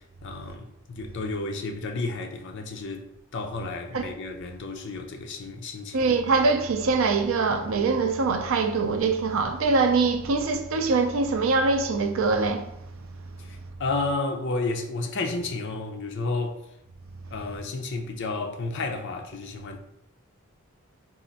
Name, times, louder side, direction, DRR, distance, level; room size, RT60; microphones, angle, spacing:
voice 1, 0.2-3.1 3.3-6.0 13.8-16.6 17.3-19.8, left 3 dB, 50° left, 0.5 m, -31 dB
voice 2, 5.9-12.7, right 4 dB, 60° right, 0.4 m, -23 dB
4.1 x 2.4 x 4.0 m
head